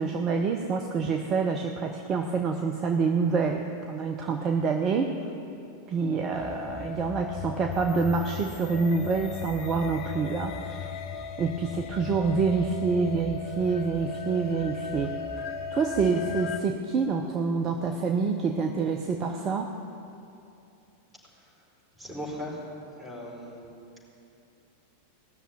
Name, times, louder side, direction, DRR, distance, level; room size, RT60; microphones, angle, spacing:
voice 1, 0.0-5.2 5.9-10.9 11.4-15.2 15.7-19.7, right 4 dB, 30° right, 4 dB, 0.8 m, -27 dB
sound 1, 6.3-16.6, left 6 dB, 45° left, 1.0 m, -37 dB
voice 2, 21.3-21.6 21.9-23.6, equal, 5° right, -4 dB, 4.4 m, -39 dB
18.0 x 6.8 x 9.1 m, 2.6 s
figure-of-eight pair, 90°, 0 cm